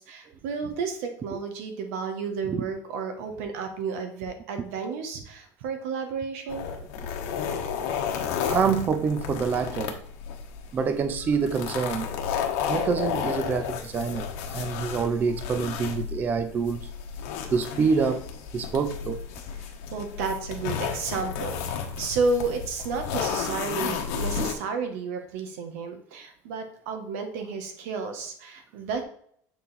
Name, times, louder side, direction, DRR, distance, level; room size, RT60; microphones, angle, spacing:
voice 1, 0.0-6.7 19.9-29.0, right 4 dB, 85° right, 1.4 m, -32 dB
sound 1, 6.5-24.5, left 7 dB, 75° left, 1.1 m, -32 dB
voice 2, 8.5-10.0 10.7-12.2 12.7-16.9 17.5-18.2 18.5-19.2 24.3-24.5, right 5 dB, 25° right, 0.4 m, -26 dB
7.5 x 4.0 x 4.2 m
cardioid pair, 160°, 8 cm